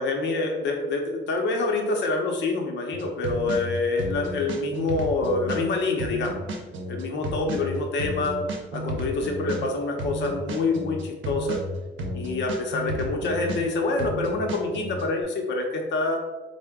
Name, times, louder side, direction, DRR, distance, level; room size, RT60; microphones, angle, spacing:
voice 1, 0.0-6.4 6.9-8.4 8.7-11.6 12.1-16.2, left 3 dB, 65° left, 1 dB, 0.7 m, -26 dB
sound 1, 2.9-15.0, equal, 75° right, 0.7 m, -32 dB
3.7 x 2.1 x 3.4 m, 1.2 s
cardioid pair, 90°, 20 cm